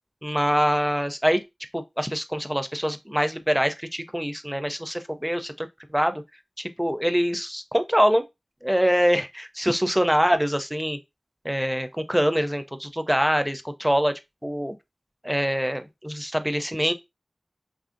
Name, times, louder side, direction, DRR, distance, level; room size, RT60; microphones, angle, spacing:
voice 1, 0.2-6.2 6.6-8.2 8.6-11.0 11.4-14.1 14.4-14.7 15.2-16.9, equal, 5° right, 0.4 m, -24 dB
3.2 x 2.5 x 2.5 m
wide cardioid pair, 50°, 0 cm